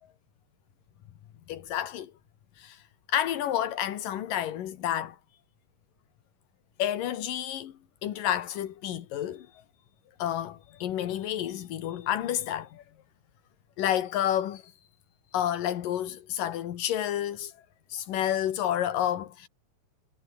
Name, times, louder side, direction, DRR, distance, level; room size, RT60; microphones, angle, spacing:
voice 1, 1.5-2.1 2.6-2.8 3.1-5.2 6.8-7.7 8.0-9.5 10.2-12.8 13.8-14.7 15.3-17.5 17.9-19.5, left 11 dB, 85° left, 3.2 m, -30 dB
omnidirectional pair, 3.8 m